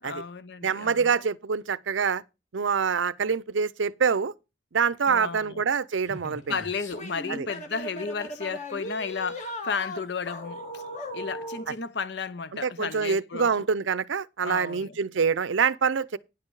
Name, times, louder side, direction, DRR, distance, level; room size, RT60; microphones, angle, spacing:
voice 1, 0.0-1.2 5.1-5.6 6.5-10.8 11.1-13.5 14.4-15.0, left 5 dB, 60° left, 0.7 m, -33 dB
voice 2, 0.6-2.2 2.5-4.3 4.7-6.4 7.3-7.5 12.6-16.2, right 6 dB, 85° right, 0.6 m, -25 dB
sound 1, 6.0-11.7, left 1 dB, 40° left, 2.2 m, -38 dB
10.5 x 7.6 x 4.7 m
head